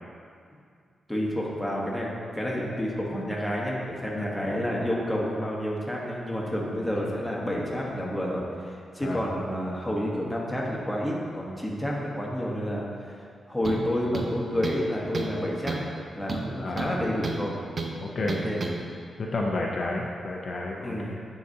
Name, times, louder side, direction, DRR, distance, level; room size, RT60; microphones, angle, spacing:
voice 1, 1.1-15.9 16.1-17.5 18.2-18.6 20.8-21.2, equal, 5° left, -4 dB, 1.0 m, -30 dB
voice 2, 4.1-4.6 9.0-9.3 16.6-16.9 18.0-18.3 19.2-21.2, left 2 dB, 50° left, -2 dB, 0.5 m, -31 dB
sound 1, 13.6-13.9 14.1-14.9 15.1-15.4 15.7-15.9 16.3-17.4 17.8-17.9 18.3-18.8, right 3 dB, 40° right, 0.5 m, -31 dB
9.3 x 3.9 x 2.7 m, 2.2 s
cardioid pair, 105°, 0 cm